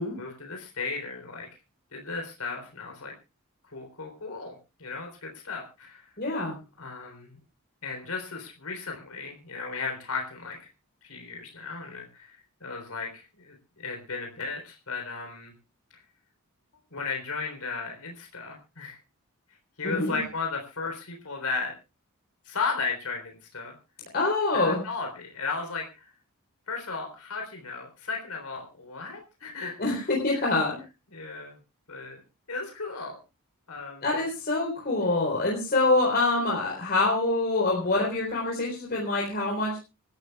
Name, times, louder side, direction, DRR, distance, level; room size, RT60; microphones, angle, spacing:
voice 1, 0.2-1.5 1.9-3.1 3.7-6.1 6.8-7.4 7.8-10.7 11.0-12.3 12.6-15.5 16.9-19.0 19.8-21.7 22.5-23.7 24.5-26.1 26.7-30.1 30.3-30.4 31.1-31.6 31.9-32.2 32.5-33.2 33.7-34.0, left 4 dB, 80° left, 2 dB, 3.8 m, -35 dB
voice 2, 6.2-6.6 19.8-20.2 24.1-24.8 29.8-30.8 34.0-39.8, left 2 dB, 45° left, -3 dB, 4.1 m, -25 dB
26.5 x 13.0 x 2.4 m, 0.29 s
head